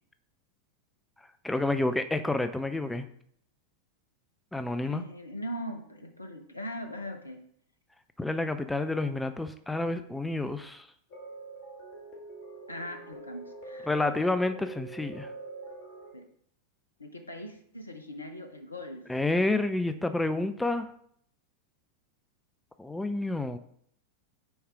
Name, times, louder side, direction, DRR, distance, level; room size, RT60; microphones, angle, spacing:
voice 1, 1.4-3.1 4.5-5.0 8.2-10.8 13.9-15.3 19.1-20.9 22.8-23.6, left 2 dB, 5° left, 10 dB, 0.4 m, -29 dB
voice 2, 4.8-7.4 12.7-13.9 16.1-16.3 17.0-19.1, equal, 80° left, 6 dB, 0.8 m, -40 dB
sound 1, 11.1-16.1, right 2 dB, 40° left, 2.0 m, -45 dB
6.3 x 4.7 x 4.8 m, 0.65 s
figure-of-eight pair, 90°, 0 cm